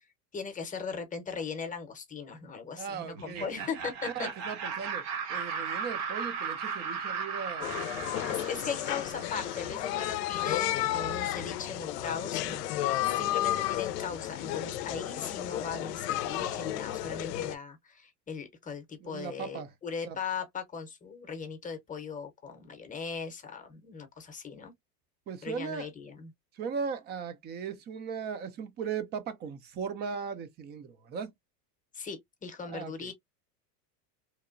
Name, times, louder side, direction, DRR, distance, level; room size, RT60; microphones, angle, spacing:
voice 1, 0.3-4.3 8.3-24.7 25.4-26.3 31.9-33.1, left 5 dB, 15° left, 0.7 m, -39 dB
voice 2, 2.8-3.6 4.1-8.0 19.0-19.7 20.0-20.2 25.3-25.9 26.5-31.3 32.6-33.1, right 6 dB, 25° right, 0.3 m, -38 dB
Laughter, 3.2-10.0, right 6 dB, 45° right, 0.8 m, -37 dB
sound 1, 7.6-17.6, left 13 dB, 80° left, 0.6 m, -32 dB
2.9 x 2.1 x 2.4 m
supercardioid pair, 110°, 48 cm